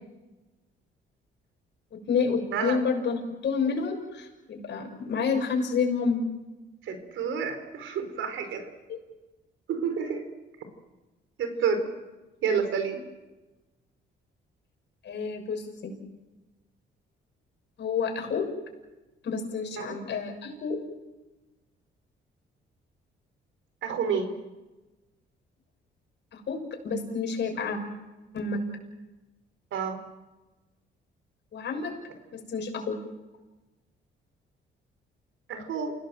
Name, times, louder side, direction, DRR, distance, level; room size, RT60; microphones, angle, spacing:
voice 1, 1.9-6.2 8.9-9.0 15.0-15.9 17.8-18.5 19.2-20.8 26.3-26.6 26.8-27.8 28.3-28.6 31.5-31.9 32.3-33.0, left 5 dB, 65° left, 3 dB, 6.6 m, -29 dB
voice 2, 6.8-8.7 9.7-10.3 11.4-11.9 12.4-13.0 19.8-19.9 23.8-24.3 29.7-30.0 35.5-35.9, right 6 dB, 80° right, 8 dB, 4.5 m, -29 dB
29.0 x 17.5 x 7.8 m, 1.1 s
cardioid pair, 90°, 20 cm